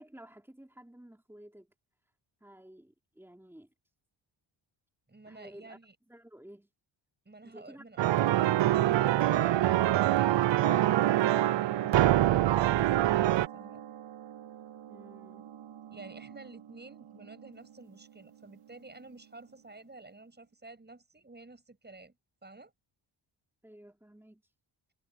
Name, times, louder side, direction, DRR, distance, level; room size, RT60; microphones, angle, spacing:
voice 1, 0.0-1.7 2.4-3.7 5.2-5.8 6.1-6.7 7.4-7.8 14.9-15.6 23.6-24.5, right 1 dB, 5° right, 3.4 m, -53 dB
voice 2, 5.1-6.0 7.3-8.1 9.3-13.8 15.9-22.2 22.4-22.7, right 2 dB, 20° right, 7.4 m, -51 dB
sound 1, 8.0-13.5, right 14 dB, 65° right, 0.6 m, -25 dB
sound 2, 10.6-19.1, right 10 dB, 85° right, 3.3 m, -41 dB
wide cardioid pair, 110°, 49 cm